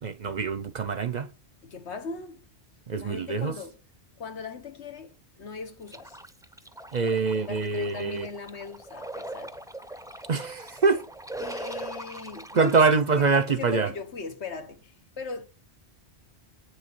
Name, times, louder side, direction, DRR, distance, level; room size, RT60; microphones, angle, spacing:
voice 1, 0.0-1.3 2.9-3.5 6.9-8.3 10.3-11.0 12.5-13.9, right 4 dB, 50° right, 0.6 m, -24 dB
voice 2, 1.6-2.4 3.0-3.8 4.2-6.2 7.5-9.6 11.4-13.0 13.3-15.4, left 4 dB, 80° left, 1.5 m, -39 dB
sound 1, 5.9-12.8, right 1 dB, 5° right, 0.4 m, -41 dB
8.1 x 6.3 x 6.0 m
omnidirectional pair, 1.1 m